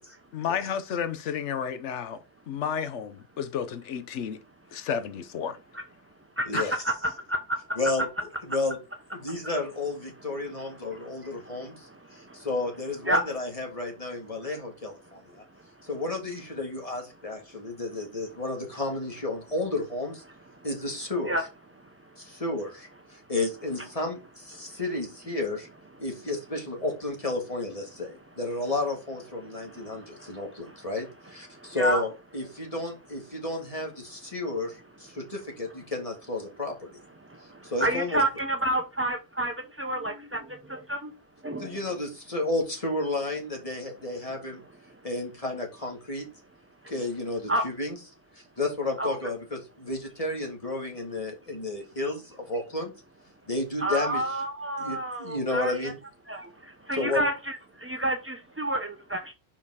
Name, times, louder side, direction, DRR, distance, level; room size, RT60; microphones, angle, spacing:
voice 1, 0.3-2.2 2.5-4.4 4.7-5.6 6.5-6.8, left 7 dB, 90° left, 1.0 m, -32 dB
voice 2, 6.4-7.4 13.1-13.2 21.3-21.4 31.8-32.0 37.8-39.5 39.8-40.4 40.7-41.0 41.4-41.7 47.5-47.6 49.0-49.1 53.8-55.9 56.3-56.5 56.9-57.6 57.8-59.3, right 1 dB, 20° right, 0.4 m, -28 dB
voice 3, 7.8-8.1 8.4-8.8 9.1-15.4 15.8-20.2 20.6-21.4 22.2-25.7 26.0-36.9 37.6-38.2 41.6-44.6 45.0-46.2 46.9-48.0 48.4-52.9 53.5-54.4 54.8-56.0 56.9-57.2, left 2 dB, 30° left, 1.9 m, -32 dB
5.2 x 4.9 x 4.8 m
omnidirectional pair, 1.2 m